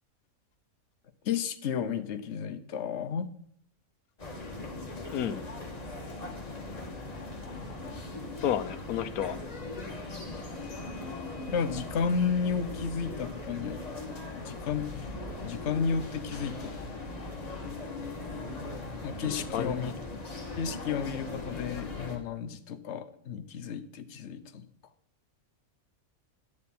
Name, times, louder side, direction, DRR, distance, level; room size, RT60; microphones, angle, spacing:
voice 1, 1.2-3.3 11.5-13.8 14.3-15.1 15.4-16.9 19.0-19.9 20.6-24.7, left 6 dB, 55° left, 10 dB, 1.0 m, -32 dB
sound 1, 4.2-22.2, left 2 dB, 25° left, 1.5 m, -39 dB
voice 2, 8.4-9.4 19.3-19.8, left 10 dB, 80° left, 12 dB, 1.2 m, -31 dB
10.0 x 8.5 x 4.2 m, 0.70 s
omnidirectional pair, 1.5 m